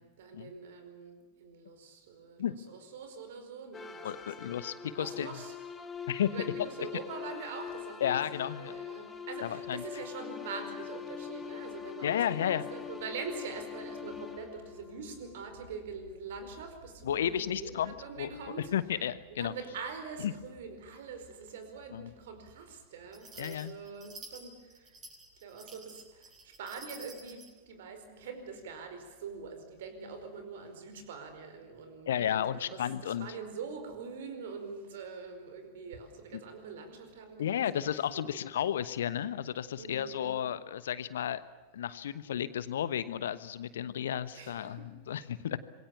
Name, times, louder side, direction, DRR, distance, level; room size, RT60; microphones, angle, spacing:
voice 1, 0.0-5.5 6.3-18.7 19.4-25.0 25.4-37.9 38.1-38.4 39.8-40.5 44.3-44.9, right 5 dB, 55° right, 8 dB, 4.9 m, -44 dB
sound 1, 3.7-15.5, left 7 dB, 15° left, 2.6 m, -43 dB
voice 2, 4.0-5.4 6.1-6.3 8.0-8.7 9.4-9.8 12.0-12.7 17.0-18.3 18.7-19.5 20.2-20.3 21.9-22.1 23.4-23.7 32.1-33.3 36.3-36.4 37.4-41.4 41.7-45.6, left 10 dB, 60° left, 16 dB, 1.2 m, -33 dB
sound 2, 23.1-27.5, right 3 dB, 25° right, 7.9 m, -50 dB
26.5 x 22.5 x 7.2 m, 1.3 s
figure-of-eight pair, 90°, 0 cm